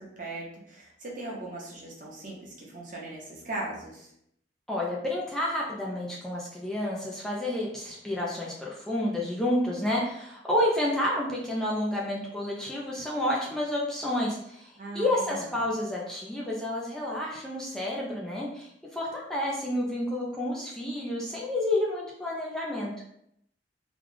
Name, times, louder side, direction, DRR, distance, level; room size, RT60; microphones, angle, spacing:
voice 1, 0.0-4.1 14.8-15.4, right 2 dB, 50° right, -3 dB, 1.0 m, -39 dB
voice 2, 4.7-22.9, left 1 dB, 5° left, -5 dB, 0.5 m, -30 dB
3.1 x 2.3 x 3.8 m, 0.73 s
head